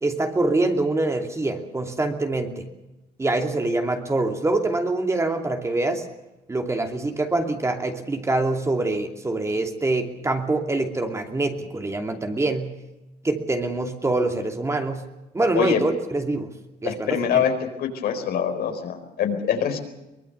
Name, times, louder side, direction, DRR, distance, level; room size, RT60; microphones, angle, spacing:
voice 1, 0.0-2.7 3.2-6.0 6.5-12.8 13.2-15.1 15.3-16.5 16.8-17.4, right 2 dB, 15° right, 4 dB, 2.7 m, -25 dB
voice 2, 16.8-17.5 17.8-19.8, left 8 dB, 65° left, 5 dB, 4.4 m, -24 dB
23.5 x 20.0 x 6.9 m, 0.97 s
cardioid pair, 110°, 17 cm